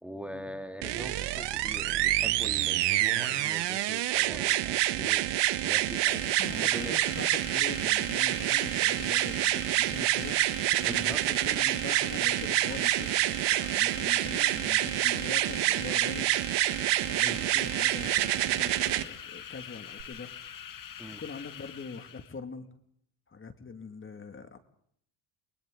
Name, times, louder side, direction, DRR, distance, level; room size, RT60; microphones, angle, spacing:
voice 1, 0.0-5.2 5.6-6.9 10.8-11.2 17.2-17.5 21.0-21.2, equal, 5° right, 6 dB, 2.1 m, -42 dB
sound 1, 0.8-19.0 20.0-20.1, right 15 dB, 70° right, 1.4 m, -27 dB
sound 2, 5.5-22.4, left 9 dB, 50° left, 1.8 m, -45 dB
voice 2, 6.3-16.3 17.1-20.3 21.2-22.7 23.3-24.6, left 4 dB, 30° left, 8 dB, 2.2 m, -43 dB
30.0 x 22.5 x 3.9 m, 0.68 s
supercardioid pair, 90°, 43 cm